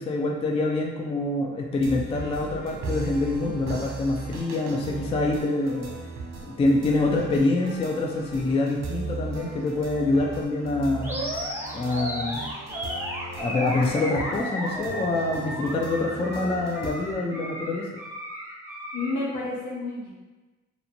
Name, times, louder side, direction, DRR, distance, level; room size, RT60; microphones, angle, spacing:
voice 1, 0.0-5.9 6.4-11.3 11.7-12.4 13.4-17.9, left 2 dB, 20° left, -1 dB, 0.3 m, -26 dB
sound 1, 1.7-17.1, right 3 dB, 65° right, 0.6 m, -38 dB
Animal, 11.0-19.2, equal, 5° right, 0.7 m, -34 dB
voice 2, 18.9-20.1, left 2 dB, 75° left, -4 dB, 0.9 m, -30 dB
2.6 x 2.1 x 2.8 m, 1.2 s
cardioid pair, 90°, 30 cm